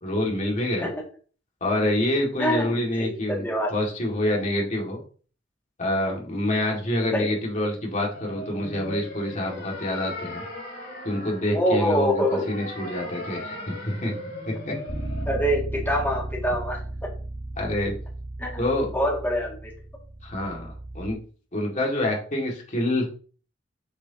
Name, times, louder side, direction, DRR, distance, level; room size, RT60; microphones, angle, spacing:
voice 1, 0.0-0.9 1.6-3.4 3.7-5.0 5.8-10.4 11.0-14.1 14.5-14.7 17.6-18.0 18.6-18.9 20.2-21.2 21.5-23.1, left 1 dB, 40° left, -1 dB, 2.3 m, -27 dB
voice 2, 2.4-3.7 7.1-7.3 11.5-12.4 15.3-16.8 18.4-18.6 18.9-19.7, equal, 10° left, -3 dB, 2.3 m, -25 dB
sound 1, 8.1-15.2, left 1 dB, 55° left, 4.0 m, -38 dB
Bass guitar, 14.9-21.1, right 1 dB, 15° right, 1.8 m, -35 dB
8.2 x 6.5 x 2.9 m, 0.41 s
head